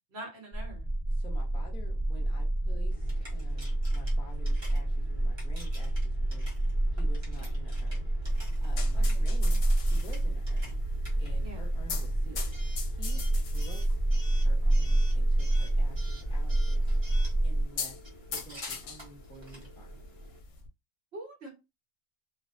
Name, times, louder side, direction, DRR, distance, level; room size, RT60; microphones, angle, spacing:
voice 1, 0.1-0.9 9.0-9.3 11.4-11.6 21.1-21.5, right 1 dB, 60° right, 1.1 m, -44 dB
sound 1, 0.5-17.6, right 1 dB, 25° left, 1.1 m, -28 dB
voice 2, 1.1-8.1 8.6-10.7 11.2-12.5 12.8-13.9 14.3-16.8 17.2-18.0 18.3-20.0, equal, 5° left, 0.5 m, -50 dB
Coin (dropping) / Alarm, 2.9-20.4, equal, 25° right, 0.8 m, -50 dB
sound 2, 8.3-20.7, left 3 dB, 70° left, 0.9 m, -41 dB
2.4 x 2.1 x 2.4 m
omnidirectional pair, 1.3 m